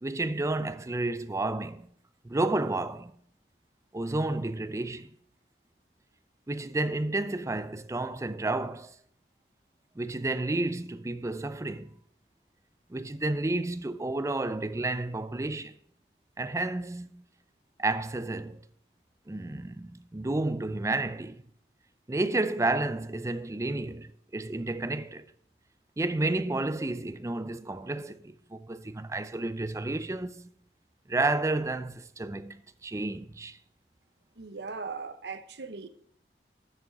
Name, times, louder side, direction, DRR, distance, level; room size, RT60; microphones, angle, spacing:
voice 1, 0.0-1.9 2.2-3.1 3.9-5.1 6.5-8.9 10.0-11.9 12.9-15.7 16.4-17.2 17.8-18.6 19.3-21.4 22.1-25.3 26.0-30.5 31.1-33.6, right 2 dB, 15° right, 0.4 m, -31 dB
voice 2, 34.4-35.9, right 4 dB, 70° right, 0.8 m, -39 dB
7.1 x 6.4 x 7.2 m
head